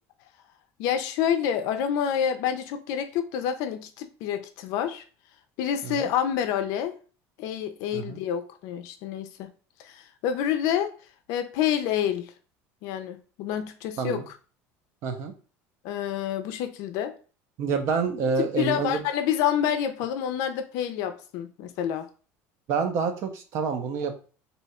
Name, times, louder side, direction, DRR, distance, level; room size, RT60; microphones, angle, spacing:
voice 1, 0.8-5.0 5.6-7.0 7.4-9.5 9.8-10.9 11.3-12.3 12.8-14.2 15.8-17.1 18.4-22.1, left 9 dB, 60° left, 8 dB, 0.4 m, -28 dB
voice 2, 15.0-15.3 17.6-19.0 22.7-24.1, right 5 dB, 45° right, 6 dB, 0.5 m, -27 dB
2.7 x 2.3 x 4.1 m, 0.38 s
cardioid pair, 170°, 7 cm